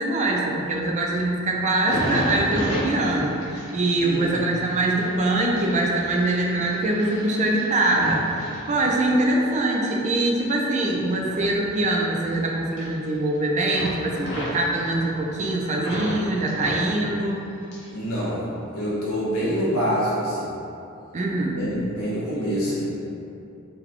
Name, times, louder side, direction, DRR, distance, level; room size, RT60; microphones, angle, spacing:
voice 1, 0.0-8.4 8.7-17.4 21.1-21.6, right 2 dB, 35° right, -1 dB, 0.4 m, -23 dB
sound 1, 1.7-9.3 9.8-12.4 12.6-13.4 13.7-16.2 16.5-18.0 18.3-19.1 19.6-19.8, equal, 55° left, 1.1 m, -33 dB
voice 2, 4.0-4.3 17.9-18.4 18.7-20.5 21.5-23.0, equal, 85° left, -8 dB, 1.3 m, -26 dB
3.9 x 2.2 x 4.4 m, 2.7 s
head